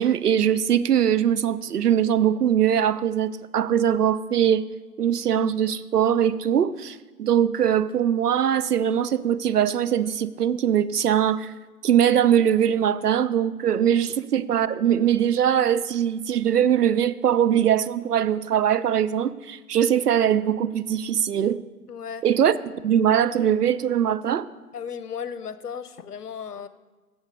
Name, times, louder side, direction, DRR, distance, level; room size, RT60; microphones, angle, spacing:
voice 1, 0.0-4.7 5.0-11.5 11.8-21.6 22.2-22.6 22.8-24.5, right 9 dB, 80° right, 0.6 m, -21 dB
voice 2, 21.9-22.2 24.7-26.7, left 7 dB, 80° left, 0.8 m, -35 dB
7.2 x 7.0 x 6.5 m
figure-of-eight pair, 150°, 46 cm